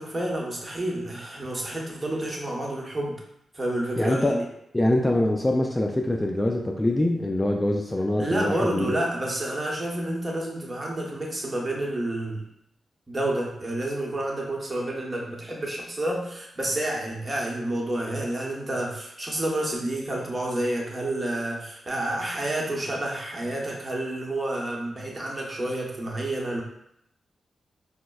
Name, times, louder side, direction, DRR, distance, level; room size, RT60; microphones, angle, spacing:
voice 1, 0.0-3.1 3.5-4.5 8.2-12.4 13.1-26.6, right 1 dB, 30° right, -2 dB, 0.9 m, -29 dB
voice 2, 4.0-4.4 4.7-9.0, left 1 dB, 20° left, 1 dB, 0.3 m, -24 dB
4.9 x 2.0 x 2.3 m, 0.75 s
cardioid pair, 65°, 0 cm